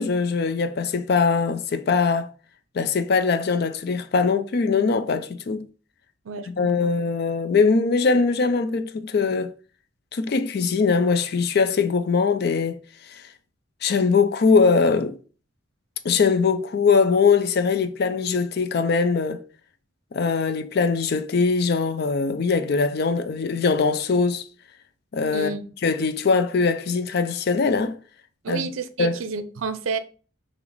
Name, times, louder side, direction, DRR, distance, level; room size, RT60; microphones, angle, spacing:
voice 1, 0.0-2.3 2.7-5.7 6.4-9.5 10.1-12.8 13.1-13.2 13.8-15.2 16.0-19.4 20.1-24.4 25.1-25.5 25.8-28.0 28.5-28.7 29.0-29.2, left 4 dB, 50° left, 0.4 m, -21 dB
voice 2, 6.2-6.9 25.3-25.7 28.4-30.0, right 5 dB, 85° right, 0.5 m, -30 dB
5.8 x 2.1 x 3.9 m
head